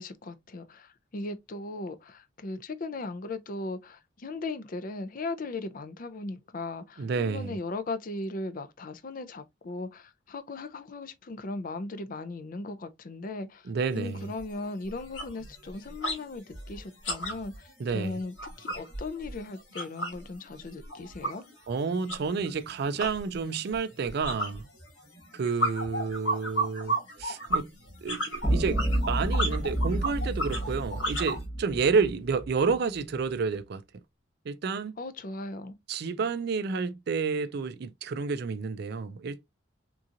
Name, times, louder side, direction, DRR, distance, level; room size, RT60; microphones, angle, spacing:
voice 1, 0.0-21.4 35.0-35.8, left 2 dB, 45° left, 0.5 m, -38 dB
voice 2, 7.0-7.6 13.7-14.3 17.8-18.2 21.7-24.6 25.3-27.7 28.0-33.8 34.5-35.0 35.9-39.5, right 5 dB, 55° right, 0.4 m, -30 dB
sound 1, 13.9-14.0 14.4-14.6 14.9-16.2 16.5-20.2 20.5-31.4, right 1 dB, 80° left, 1.9 m, -33 dB
sound 2, 28.4-32.7, right 1 dB, 15° right, 0.8 m, -30 dB
3.7 x 2.9 x 2.5 m
head